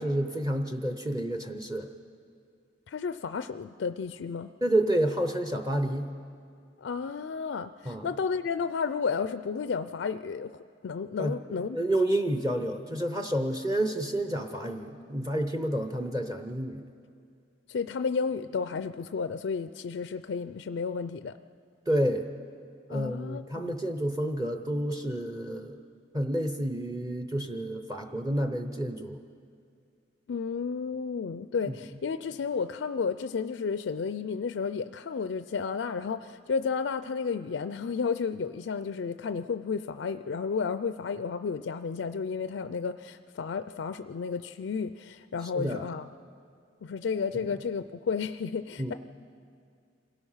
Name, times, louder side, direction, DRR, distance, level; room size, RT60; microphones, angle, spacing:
voice 1, 0.0-1.9 4.6-6.1 7.9-8.1 11.2-11.4 11.7-16.8 21.9-22.3 22.9-25.8 26.1-29.2 45.6-45.9 48.8-48.9, right 1 dB, 20° right, 6 dB, 0.7 m, -29 dB
voice 2, 2.9-4.5 6.8-11.8 17.7-21.4 22.9-23.8 30.3-46.1 46.8-48.9, left 5 dB, 75° left, 11 dB, 0.4 m, -32 dB
26.5 x 17.5 x 5.6 m, 2.3 s
head